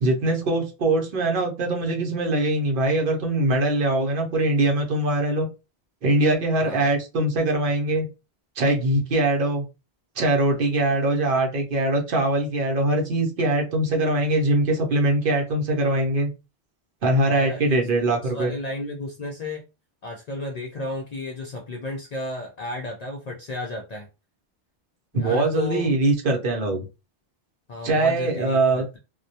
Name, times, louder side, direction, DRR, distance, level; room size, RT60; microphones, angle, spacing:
voice 1, 0.0-5.5 6.0-8.1 8.6-9.7 10.2-16.3 17.0-18.5 25.1-26.9 27.8-28.9, right 2 dB, 60° right, 2 dB, 0.8 m, -22 dB
voice 2, 6.6-6.9 17.2-19.6 20.0-24.1 25.1-25.9 27.7-29.0, left 2 dB, 55° left, -1 dB, 0.4 m, -33 dB
2.2 x 2.1 x 2.6 m, 0.28 s
omnidirectional pair, 1.1 m